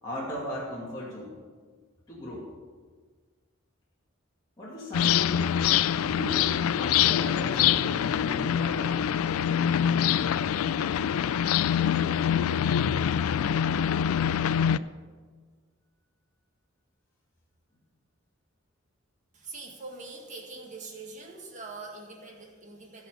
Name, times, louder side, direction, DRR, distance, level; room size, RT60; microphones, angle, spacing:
voice 1, 0.0-1.4 2.1-2.5 4.6-5.5 6.0-8.9, left 1 dB, 20° left, -10 dB, 2.5 m, -37 dB
sound 1, 4.9-14.8, left 9 dB, 90° left, 0.3 m, -25 dB
voice 2, 19.3-23.1, right 3 dB, 35° right, 0 dB, 2.0 m, -43 dB
15.5 x 5.6 x 7.2 m, 1.5 s
head